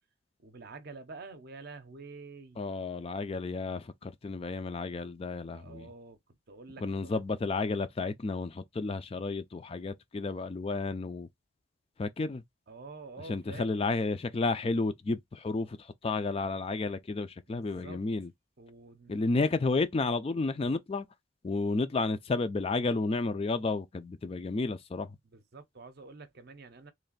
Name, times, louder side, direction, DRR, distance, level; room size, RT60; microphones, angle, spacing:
voice 1, 0.4-2.6 5.5-7.2 12.7-13.9 17.5-18.0 18.6-19.3 25.2-26.9, right 3 dB, 50° right, 0.6 m, -48 dB
voice 2, 2.6-5.9 6.8-11.3 12.0-12.4 13.2-18.3 19.1-21.1 21.4-25.2, left 3 dB, 25° left, 0.3 m, -32 dB
3.2 x 2.5 x 3.9 m
head